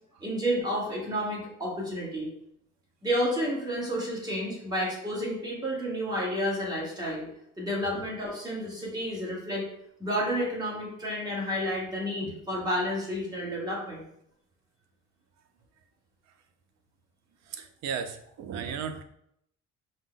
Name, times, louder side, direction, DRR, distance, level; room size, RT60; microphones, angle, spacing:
voice 1, 0.2-2.3 3.0-7.3 7.6-9.6 10.0-14.0, equal, 10° right, -5 dB, 1.2 m, -30 dB
voice 2, 17.5-19.0, right 7 dB, 55° right, 8 dB, 0.5 m, -35 dB
5.0 x 2.1 x 3.8 m, 0.74 s
cardioid pair, 155°, 32 cm